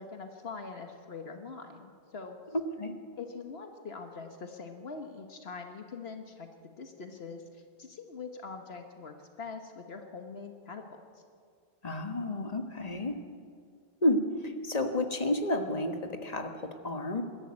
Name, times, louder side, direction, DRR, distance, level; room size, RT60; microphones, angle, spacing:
voice 1, 0.0-2.4 3.2-11.0, left 4 dB, 75° left, 5 dB, 1.5 m, -43 dB
voice 2, 2.5-2.9 11.8-13.2 14.0-17.2, left 1 dB, 40° left, 6 dB, 1.5 m, -31 dB
20.5 x 13.0 x 9.7 m, 2.2 s
omnidirectional pair, 1.1 m